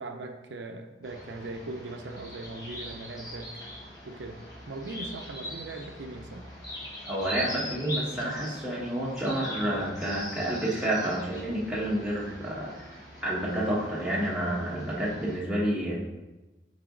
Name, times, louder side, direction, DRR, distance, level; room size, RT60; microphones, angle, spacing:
voice 1, 0.0-3.5 4.1-6.5, right 2 dB, 90° right, 5 dB, 0.6 m, -40 dB
sound 1, 1.0-15.4, equal, 20° left, 1.2 m, -42 dB
voice 2, 7.0-12.7 13.2-15.9, right 1 dB, 5° right, -6 dB, 1.3 m, -29 dB
6.8 x 4.1 x 3.8 m, 1.1 s
head